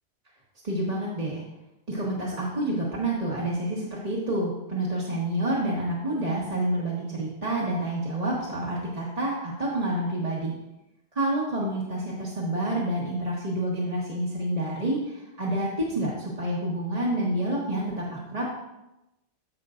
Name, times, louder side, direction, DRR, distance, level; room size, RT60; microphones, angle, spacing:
voice 1, 0.6-1.4 1.9-10.6 11.1-18.5, right 1 dB, 35° right, -6 dB, 1.5 m, -28 dB
14.0 x 5.5 x 2.6 m, 0.92 s
omnidirectional pair, 1.1 m